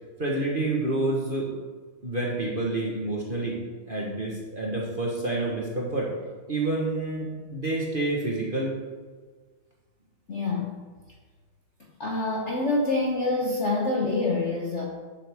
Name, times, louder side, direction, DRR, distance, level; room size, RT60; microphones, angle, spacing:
voice 1, 0.2-1.5 2.0-3.6 3.9-6.1 6.5-8.7, right 2 dB, 30° right, -3 dB, 1.2 m, -28 dB
voice 2, 10.3-10.7 12.0-14.9, left 2 dB, 45° left, -1 dB, 1.0 m, -26 dB
11.5 x 7.6 x 3.6 m, 1.5 s
omnidirectional pair, 2.3 m